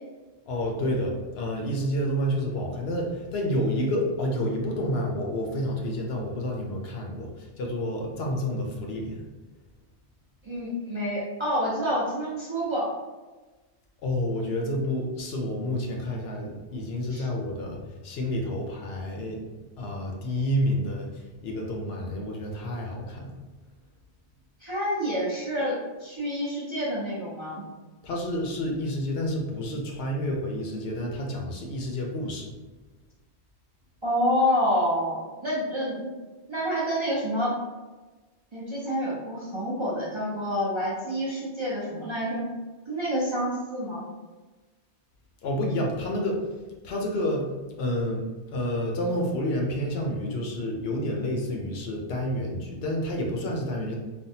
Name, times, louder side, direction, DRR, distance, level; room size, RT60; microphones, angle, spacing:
voice 1, 0.5-9.2 14.0-19.5 19.8-23.3 28.0-32.5 45.4-46.4 46.8-47.5 47.8-53.9, equal, 70° left, 0 dB, 0.8 m, -29 dB
voice 2, 10.4-12.9 17.1-17.3 24.6-27.6 34.0-36.1 36.5-37.6 38.5-42.4 42.9-44.1, equal, 35° right, -7 dB, 0.6 m, -28 dB
3.4 x 2.1 x 2.7 m, 1.2 s
omnidirectional pair, 1.1 m